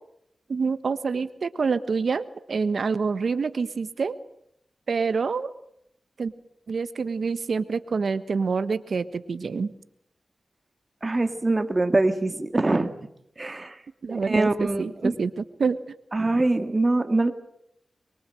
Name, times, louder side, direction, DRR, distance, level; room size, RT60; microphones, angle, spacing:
voice 1, 0.5-4.2 4.9-5.5 6.2-6.3 6.7-9.7 14.0-16.0, right 5 dB, 75° right, 13 dB, 1.4 m, -27 dB
voice 2, 11.0-12.9 13.4-13.8 14.1-15.2 16.1-17.3, right 2 dB, 35° right, 8 dB, 1.9 m, -23 dB
24.0 x 23.0 x 7.7 m, 0.76 s
cardioid pair, 50°, 0 cm